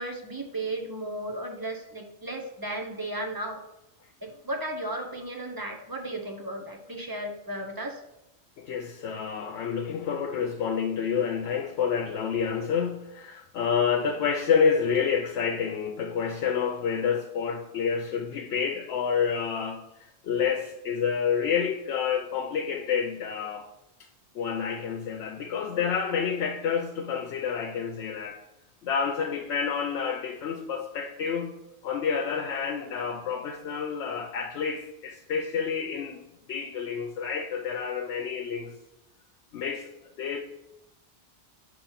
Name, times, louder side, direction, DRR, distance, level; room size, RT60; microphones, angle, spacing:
voice 1, 0.0-3.6 4.2-8.0, right 1 dB, 25° right, 0.6 m, -35 dB
voice 2, 8.6-19.8 20.2-23.7 24.3-28.4 28.8-36.2 36.5-38.7 39.5-39.9 40.2-40.4, left 6 dB, 75° left, 0.9 m, -28 dB
5.9 x 3.1 x 5.6 m
omnidirectional pair, 1.2 m